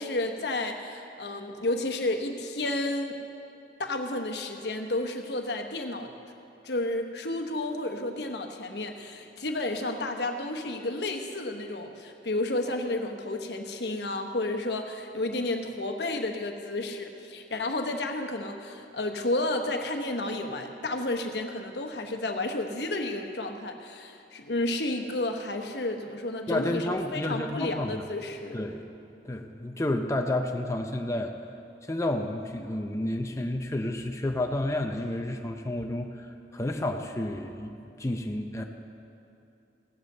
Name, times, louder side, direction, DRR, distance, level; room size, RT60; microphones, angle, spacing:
voice 1, 0.0-3.2 3.8-6.1 6.6-26.9 27.1-28.6, left 2 dB, 70° left, 4 dB, 1.1 m, -31 dB
voice 2, 26.5-28.0 28.5-28.9 29.2-31.3 31.8-38.6, left 1 dB, 15° left, 3 dB, 0.6 m, -30 dB
16.0 x 8.1 x 6.7 m, 2.7 s
head